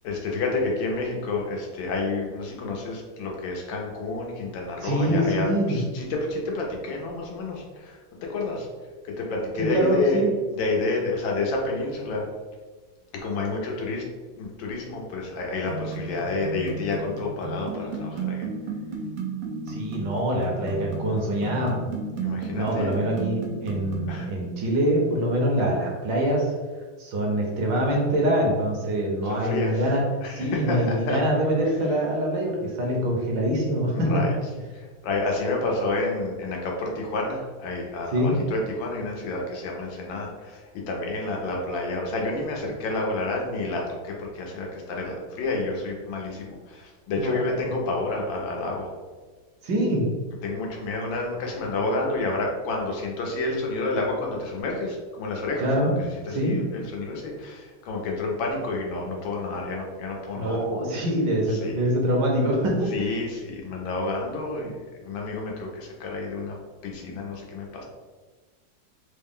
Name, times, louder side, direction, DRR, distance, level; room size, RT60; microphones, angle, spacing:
voice 1, 0.0-8.7 9.0-10.2 10.5-12.2 13.2-14.0 14.4-18.5 22.2-22.9 24.1-24.3 29.3-29.7 30.2-31.2 33.9-34.3 34.7-48.9 50.4-60.6 61.6-61.8 62.9-67.8, left 2 dB, 70° left, 0 dB, 1.4 m, -29 dB
voice 2, 4.8-5.8 9.6-10.3 19.7-21.9 22.5-26.5 27.0-30.0 30.3-34.2 38.1-38.4 47.1-47.7 49.6-50.1 55.6-55.9 56.3-56.6 60.4-63.1, right 1 dB, 70° right, -1 dB, 1.3 m, -24 dB
sound 1, 15.7-24.2, right 4 dB, 90° right, 1.5 m, -33 dB
3.9 x 2.1 x 3.5 m, 1.4 s
omnidirectional pair, 2.2 m